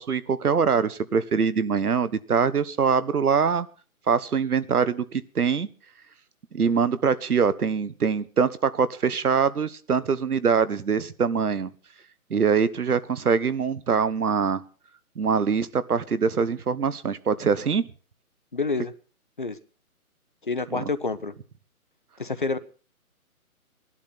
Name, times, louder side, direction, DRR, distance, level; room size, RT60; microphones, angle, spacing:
voice 1, 0.0-3.7 4.1-5.7 6.5-11.7 12.3-14.6 15.2-17.8 20.7-20.8, right 6 dB, 80° right, 16 dB, 1.4 m, -23 dB
voice 2, 18.5-18.9 19.4-19.6 20.4-21.3 22.2-22.6, left 3 dB, 35° left, 13 dB, 0.8 m, -28 dB
17.5 x 11.5 x 5.9 m, 0.40 s
hypercardioid pair, 175°, 44 cm